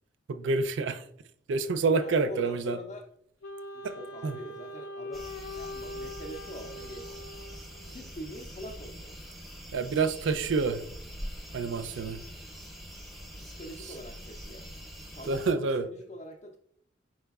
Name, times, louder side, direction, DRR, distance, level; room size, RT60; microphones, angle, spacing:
voice 1, 0.3-1.0 1.5-2.8 3.8-4.0 4.2-4.4 9.7-10.8 11.5-12.2 15.3-15.9, right 4 dB, 70° right, 0.4 m, -28 dB
voice 2, 2.0-3.1 3.7-5.3 5.6-7.1 7.9-9.2 13.4-14.7 15.0-16.6, equal, 35° left, 0.4 m, -44 dB
Wind instrument woodwind instrument, 3.4-8.0, left 1 dB, 85° left, 0.5 m, -42 dB
sound 1, 5.1-15.5, equal, ahead, 0.6 m, -44 dB
4.8 x 4.5 x 2.3 m
head